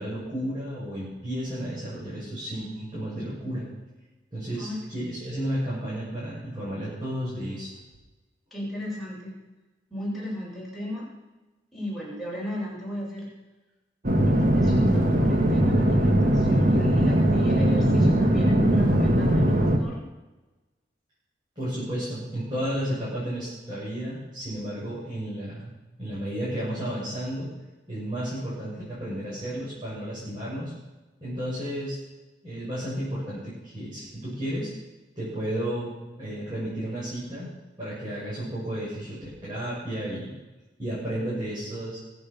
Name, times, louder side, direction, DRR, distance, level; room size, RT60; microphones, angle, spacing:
voice 1, 0.0-3.6 4.3-7.7 21.6-25.7 26.0-27.5 27.9-30.7 31.2-32.0 32.4-34.7 35.2-37.5 37.8-40.3 40.8-42.0, right 1 dB, 25° right, -9 dB, 7.0 m, -32 dB
voice 2, 8.5-9.3 9.9-11.0 11.7-13.3 14.2-20.0, left 1 dB, ahead, -6 dB, 7.7 m, -35 dB
sound 1, 14.0-19.8, right 1 dB, 45° right, 2.0 m, -20 dB
23.5 x 8.3 x 7.1 m, 1.1 s
head